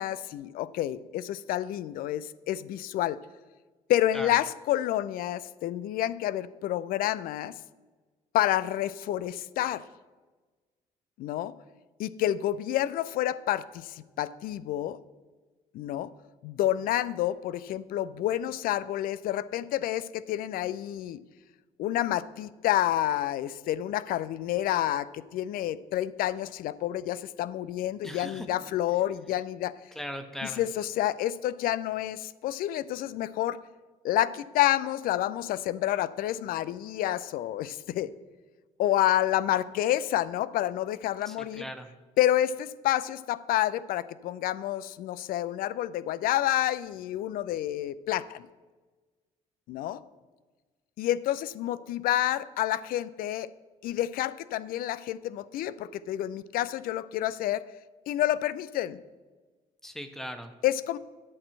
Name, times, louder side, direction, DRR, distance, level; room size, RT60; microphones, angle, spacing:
voice 1, 0.0-3.2 3.9-7.6 8.3-9.9 11.2-11.5 12.0-15.0 15.7-16.1 16.4-21.2 21.8-29.8 30.4-33.6 34.0-38.1 38.8-41.7 42.2-48.5 49.7-50.0 51.0-53.5 53.8-57.6 58.1-59.0 60.6-61.0, left 13 dB, 50° left, 17 dB, 0.4 m, -29 dB
voice 2, 28.0-28.5 29.9-30.6 41.3-41.9 59.8-60.5, equal, ahead, 8 dB, 1.0 m, -38 dB
10.5 x 4.2 x 7.5 m, 1.3 s
figure-of-eight pair, 45°, 19 cm